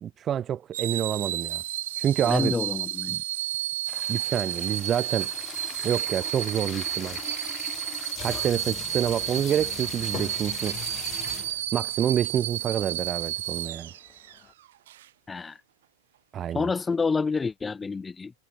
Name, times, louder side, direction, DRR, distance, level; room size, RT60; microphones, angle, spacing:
voice 1, 0.0-1.6 2.0-2.6 3.1-3.2 4.1-5.3 5.8-7.2 8.2-10.8 11.7-13.9 16.3-16.7, right 9 dB, 25° right, 1.0 m, -27 dB
sound 1, 0.7-14.4 14.9-15.1, right 13 dB, 55° right, 1.5 m, -32 dB
voice 2, 2.2-3.2 15.3-15.6 16.5-18.3, left 4 dB, 15° left, 2.9 m, -28 dB
sound 2, 3.9-11.7 12.2-12.3 12.5-12.8 13.2-14.5, left 11 dB, 30° left, 4.1 m, -40 dB
figure-of-eight pair, 90°, 0 cm